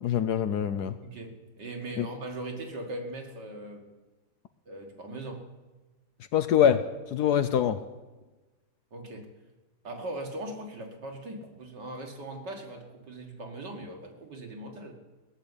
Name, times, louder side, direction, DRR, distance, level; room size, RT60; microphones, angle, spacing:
voice 1, 0.0-0.9 2.0-2.1 6.3-6.8 7.1-7.8, left 9 dB, 70° left, 11 dB, 1.1 m, -24 dB
voice 2, 1.0-3.9 4.7-5.4 8.9-9.3 9.8-14.9, right 1 dB, 65° right, 2 dB, 2.6 m, -39 dB
18.0 x 6.9 x 9.8 m, 1.2 s
omnidirectional pair, 2.1 m